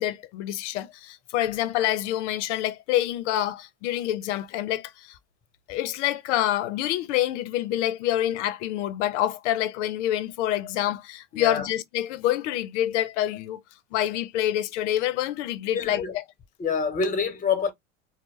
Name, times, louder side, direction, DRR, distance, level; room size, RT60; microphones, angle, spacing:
voice 1, 0.0-5.2 5.7-13.6 13.9-16.2, left 13 dB, 70° left, 0.5 m, -27 dB
voice 2, 11.3-11.7 15.7-16.2 16.6-17.7, left 5 dB, 20° left, 0.8 m, -26 dB
2.0 x 2.0 x 3.1 m
hypercardioid pair, 100°, 37 cm